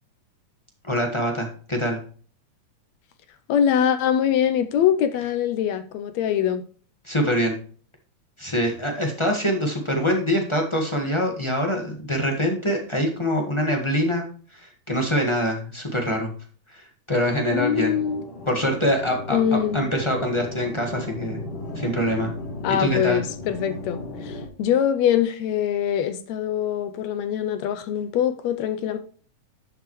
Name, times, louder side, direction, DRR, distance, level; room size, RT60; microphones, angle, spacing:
voice 1, 0.8-2.0 7.0-7.6 8.4-14.2 14.5-16.3 16.7-17.9 18.5-21.4 21.7-22.3 22.8-23.2, equal, 20° left, 0.7 m, -24 dB
voice 2, 3.5-6.6 17.5-18.2 19.3-19.9 22.6-29.0, left 9 dB, 75° left, 1.8 m, -23 dB
sound 1, 17.2-24.5, left 2 dB, 50° left, 3.3 m, -36 dB
11.0 x 6.9 x 3.1 m
omnidirectional pair, 3.4 m